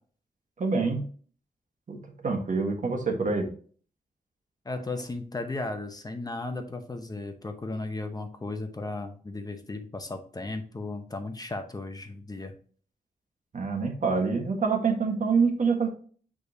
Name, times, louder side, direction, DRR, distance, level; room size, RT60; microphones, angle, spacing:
voice 1, 0.6-1.0 1.9-2.0 2.2-3.5 13.5-15.9, right 4 dB, 55° right, 3 dB, 1.4 m, -26 dB
voice 2, 4.6-12.5, left 2 dB, 25° left, 6 dB, 0.8 m, -35 dB
6.9 x 4.9 x 2.7 m, 0.43 s
wide cardioid pair, 170°, 15 cm